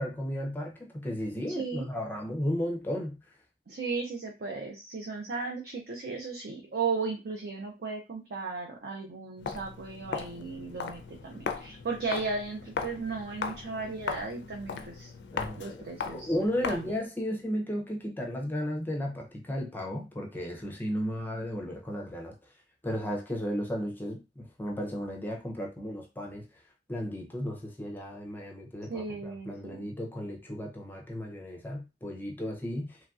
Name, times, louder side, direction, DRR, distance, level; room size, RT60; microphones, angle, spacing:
voice 1, 0.0-3.2 15.3-15.8 16.1-22.3 22.8-26.4 26.9-33.0, equal, 10° left, 0 dB, 0.5 m, -34 dB
voice 2, 1.5-1.9 3.7-15.1 15.6-16.3 16.7-16.9 28.9-29.9, right 4 dB, 60° right, 1 dB, 0.5 m, -35 dB
Walk footsteps, 9.4-17.0, left 5 dB, 70° left, 0.4 m, -38 dB
3.0 x 2.5 x 2.3 m, 0.27 s
head